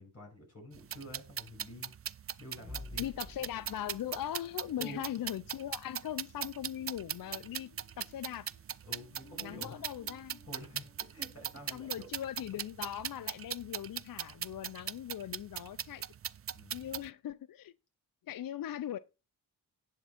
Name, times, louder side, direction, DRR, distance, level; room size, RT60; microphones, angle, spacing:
voice 1, 0.0-1.9 2.4-3.1 4.8-5.0 8.8-10.0 10.5-12.1 16.5-16.9, left 1 dB, 35° left, 5.9 m, -49 dB
sound 1, 0.7-17.1, right 8 dB, 35° right, 0.4 m, -40 dB
sound 2, 2.2-12.7, left 2 dB, 5° left, 4.3 m, -56 dB
voice 2, 3.0-8.5 9.4-10.4 11.7-16.0 16.7-17.7 18.3-19.0, left 11 dB, 55° left, 0.5 m, -40 dB
10.5 x 3.7 x 5.7 m
cardioid pair, 60°, 42 cm